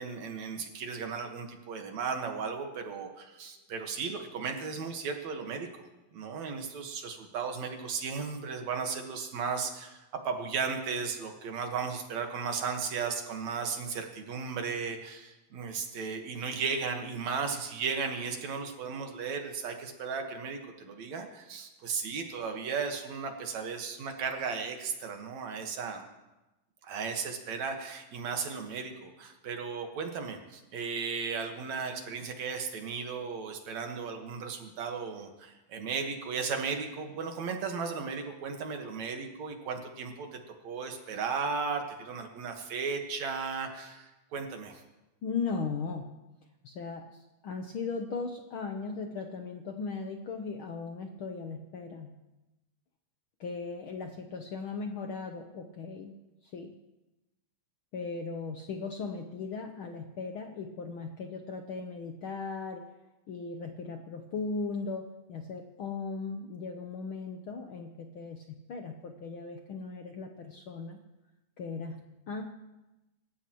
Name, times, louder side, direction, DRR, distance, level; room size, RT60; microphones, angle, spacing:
voice 1, 0.0-5.7 6.1-26.0 26.8-40.4 40.6-44.8, right 5 dB, 70° right, 4 dB, 2.8 m, -35 dB
voice 2, 45.2-46.1 46.6-52.1 53.4-56.2 56.4-56.7 57.9-62.9 63.3-71.0 71.6-72.4, left 4 dB, 65° left, 4 dB, 1.3 m, -38 dB
27.5 x 14.5 x 3.1 m, 1.0 s
omnidirectional pair, 3.3 m